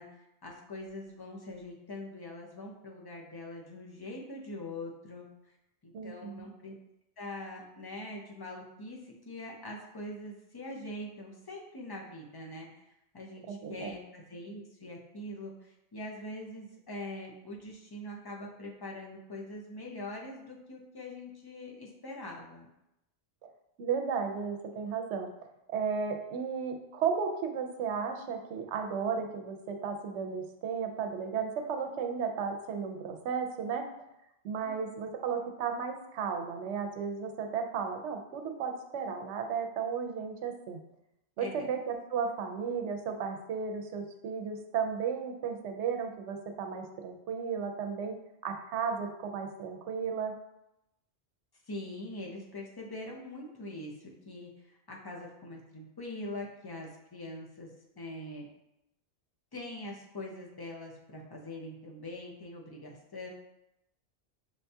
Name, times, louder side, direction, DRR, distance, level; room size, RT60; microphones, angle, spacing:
voice 1, 0.0-5.6 5.8-6.7 7.2-12.9 13.1-22.7 34.6-34.7 41.4-41.7 51.7-57.7 58.0-58.5 59.5-63.3, left 1 dB, 30° left, -1 dB, 0.5 m, -43 dB
voice 2, 5.9-6.5 13.5-13.9 23.8-25.3 25.7-33.9 34.4-40.8 41.4-48.1 48.4-50.3, right 6 dB, 85° right, 4 dB, 0.9 m, -34 dB
6.4 x 2.3 x 2.7 m, 0.85 s
omnidirectional pair, 1.2 m